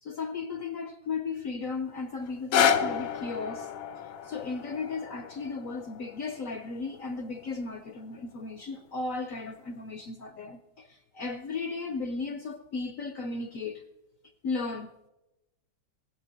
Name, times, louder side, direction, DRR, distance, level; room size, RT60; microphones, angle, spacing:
voice 1, 0.0-3.7 4.2-13.8 14.4-14.9, left 4 dB, 65° left, 0.8 m, -35 dB
sound 1, 2.3-8.3 9.0-9.1, left 8 dB, 85° left, 1.6 m, -31 dB
18.5 x 7.3 x 8.9 m
omnidirectional pair, 2.1 m